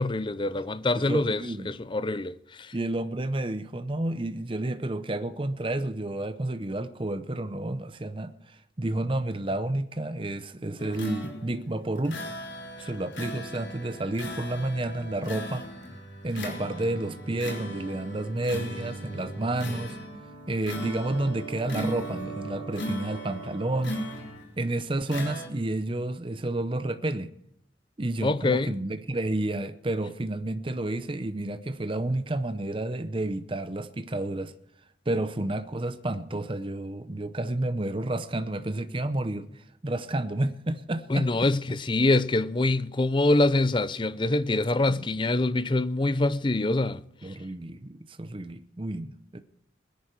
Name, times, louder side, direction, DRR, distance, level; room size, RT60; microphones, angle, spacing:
voice 1, 0.0-2.3 28.2-28.7 41.1-47.0, left 2 dB, 25° left, 0.5 m, -25 dB
voice 2, 1.0-1.7 2.7-12.2 12.8-15.7 16.2-20.0 20.5-24.0 24.6-27.3 28.0-34.5 35.1-41.5 44.9-45.1 47.2-49.4, right 1 dB, 25° right, 0.6 m, -30 dB
sound 1, 10.8-24.6 25.1-25.5, equal, 75° left, 3.5 m, -37 dB
21.0 x 10.5 x 4.6 m
head